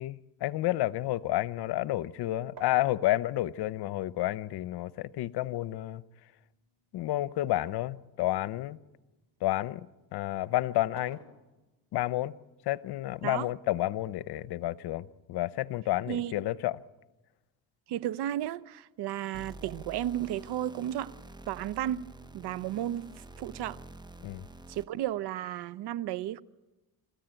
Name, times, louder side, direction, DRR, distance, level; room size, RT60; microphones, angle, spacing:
voice 1, 0.0-6.0 6.9-8.8 9.4-11.2 11.9-12.3 12.6-16.8 24.2-24.4, left 15 dB, 75° left, 0.9 m, -30 dB
sound 1, 0.9-2.2 2.6-4.5 5.4-7.9 8.4-9.7 10.7-11.9 13.0-14.0, right 4 dB, 65° right, 6.4 m, -55 dB
voice 2, 17.9-21.1 21.5-22.0 22.3-23.0 23.4-23.8 24.7-26.4, right 12 dB, 80° right, 0.9 m, -33 dB
sound 2, 19.3-25.1, right 2 dB, 10° right, 0.8 m, -48 dB
27.5 x 14.5 x 9.1 m
cardioid pair, 80°, 39 cm